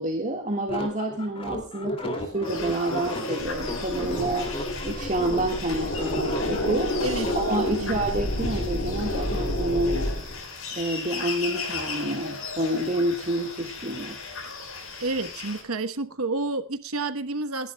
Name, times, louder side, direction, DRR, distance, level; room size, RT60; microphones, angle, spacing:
voice 1, 0.0-4.6 4.8-7.0 7.3-10.1 10.7-14.2, right 1 dB, 35° right, 2 dB, 1.7 m, -28 dB
sound 1, 0.7-7.4, left 1 dB, 25° left, 2.5 m, -33 dB
sound 2, 2.4-15.6, left 4 dB, 70° left, 4.8 m, -37 dB
sound 3, 3.4-10.4, left 1 dB, 50° left, 6.9 m, -30 dB
voice 2, 7.0-7.3 7.8-8.0 15.0-17.7, right 3 dB, 75° right, 8 dB, 1.1 m, -29 dB
29.0 x 11.0 x 2.3 m, 0.29 s
head